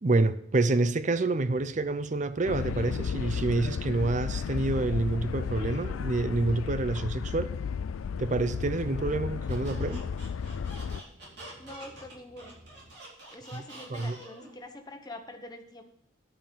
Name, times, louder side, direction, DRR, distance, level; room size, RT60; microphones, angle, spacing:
voice 1, 0.0-7.5 8.2-10.0 13.5-13.6 13.9-14.2, right 2 dB, 35° right, 13 dB, 0.5 m, -28 dB
sound 1, 1.4-12.9, equal, 80° right, 2.8 m, -56 dB
sound 2, 2.5-11.0, left 6 dB, 90° left, 0.4 m, -33 dB
Squeak, 9.5-14.5, right 2 dB, 55° right, 4.1 m, -47 dB
voice 2, 11.6-12.6 13.3-15.8, left 1 dB, 20° left, 4 dB, 1.0 m, -45 dB
10.0 x 5.5 x 7.0 m, 0.73 s
head